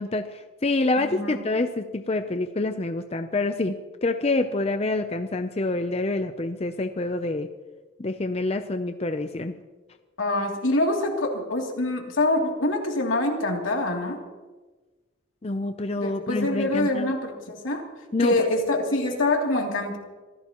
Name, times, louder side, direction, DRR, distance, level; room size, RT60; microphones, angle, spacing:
voice 1, 0.0-3.8 4.0-7.5 8.0-9.5 15.4-17.1 18.1-18.4, left 2 dB, 30° left, 8 dB, 0.6 m, -27 dB
voice 2, 1.0-1.4 10.2-14.2 16.0-17.9 18.2-20.0, left 2 dB, 85° left, 0 dB, 2.9 m, -25 dB
25.5 x 16.5 x 3.0 m, 1.3 s
head